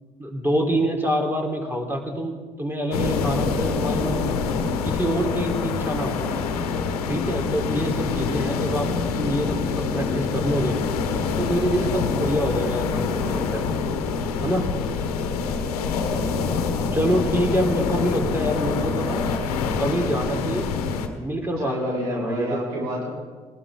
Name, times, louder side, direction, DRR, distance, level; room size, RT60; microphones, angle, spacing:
voice 1, 0.2-4.4 4.8-6.2 7.1-10.8 11.4-13.6 14.4-14.7 16.9-19.2 19.8-20.7 21.2-22.6, equal, 10° right, 1 dB, 3.9 m, -26 dB
sound 1, 2.9-21.1, left 5 dB, 85° left, 1.3 m, -25 dB
voice 2, 21.6-23.1, equal, 85° right, -4 dB, 4.7 m, -28 dB
19.5 x 18.5 x 3.8 m, 1.4 s
hypercardioid pair, 50°, 19 cm